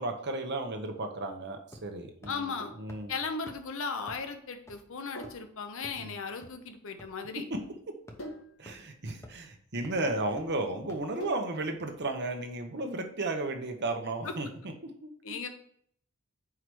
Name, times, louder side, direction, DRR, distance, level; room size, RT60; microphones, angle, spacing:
voice 1, 0.0-3.1 6.0-6.1 7.5-7.6 8.6-14.5 14.8-15.1, right 2 dB, 50° right, 5 dB, 1.0 m, -34 dB
sound 1, 1.7-2.0 2.2-2.3 2.9-3.0 3.5-3.6 4.1-4.2 4.7-4.8 5.2-5.5 5.8-5.9 6.4-6.5 7.0-7.1 7.5-7.6 8.1-8.2 8.7-8.8 9.2-9.5 9.8-9.9 10.4-10.5 10.9-11.0, left 1 dB, 15° left, 0.9 m, -47 dB
voice 2, 2.3-2.7 3.1-7.4 14.2-14.3 15.2-15.5, left 5 dB, 65° left, 6 dB, 0.9 m, -36 dB
Sink (filling or washing), 2.6-11.7, equal, 85° left, 2.2 m, -49 dB
4.9 x 4.8 x 6.2 m, 0.65 s
head